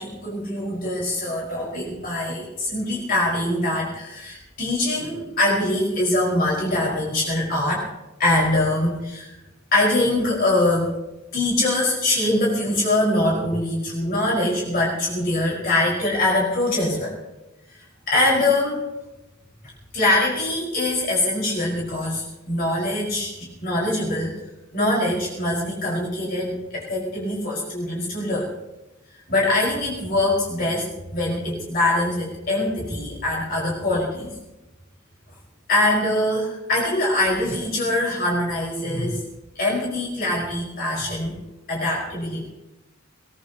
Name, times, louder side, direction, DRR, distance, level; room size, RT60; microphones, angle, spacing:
voice 1, 0.0-7.9 8.2-9.3 9.7-11.0 11.3-17.1 18.1-18.8 19.9-24.3 24.7-28.5 29.3-34.3 35.7-39.2 39.6-41.4 41.7-42.5, left 1 dB, 45° left, -4 dB, 5.1 m, -23 dB
22.5 x 19.0 x 3.0 m, 0.98 s
head